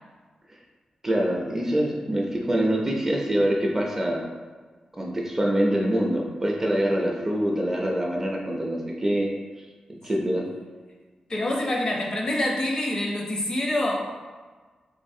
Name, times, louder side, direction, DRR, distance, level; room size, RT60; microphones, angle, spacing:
voice 1, 1.0-4.2 4.9-9.3 9.9-10.5, right 1 dB, 20° right, -1 dB, 0.4 m, -25 dB
voice 2, 11.3-14.2, left 1 dB, 40° left, -1 dB, 0.7 m, -26 dB
3.8 x 3.2 x 2.7 m, 1.4 s
wide cardioid pair, 125°, 2 cm